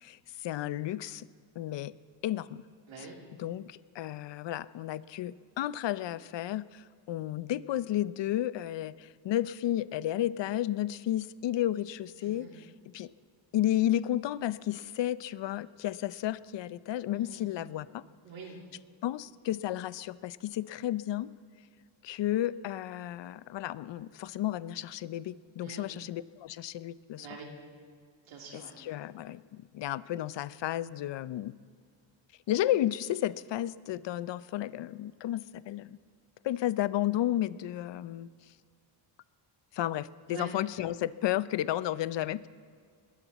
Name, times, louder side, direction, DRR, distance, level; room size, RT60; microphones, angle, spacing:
voice 1, 0.0-1.3 1.6-1.9 2.2-2.6 3.0-3.1 3.4-13.1 13.5-18.0 19.0-21.3 22.0-27.3 28.5-31.5 32.5-36.0 36.4-38.3 39.7-42.5, left 13 dB, 65° left, 17 dB, 0.6 m, -32 dB
voice 2, 2.9-3.2 12.2-12.6 17.1-17.5 18.2-18.6 25.6-25.9 27.2-27.5 28.2-28.7 40.3-40.5, right 5 dB, 85° right, 0 dB, 2.9 m, -45 dB
21.0 x 13.0 x 4.1 m, 2.2 s
cardioid pair, 85°, 46 cm